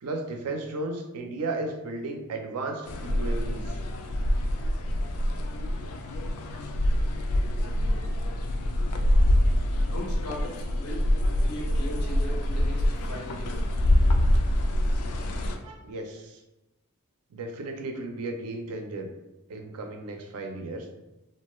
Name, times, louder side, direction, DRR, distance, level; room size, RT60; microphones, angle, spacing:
voice 1, 0.0-3.8 15.6-16.4 17.3-19.1 19.5-20.9, right 2 dB, 80° right, 4 dB, 0.4 m, -34 dB
sound 1, 2.9-15.6, left 1 dB, 70° left, 0.3 m, -25 dB
voice 2, 9.8-13.6, equal, 90° left, -3 dB, 0.8 m, -39 dB
2.5 x 2.2 x 2.9 m, 0.97 s
head